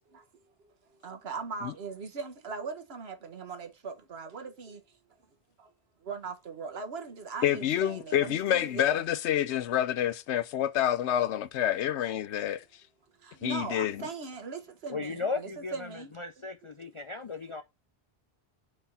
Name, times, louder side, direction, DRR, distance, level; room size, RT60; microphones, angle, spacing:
voice 1, 1.0-4.8 6.1-9.0 13.2-16.5, right 5 dB, 65° right, 1.3 m, -40 dB
voice 2, 7.4-12.6 13.4-14.0, left 11 dB, 80° left, 0.9 m, -28 dB
voice 3, 14.9-17.6, left 4 dB, 45° left, 0.4 m, -36 dB
4.5 x 4.2 x 5.4 m
omnidirectional pair, 1.2 m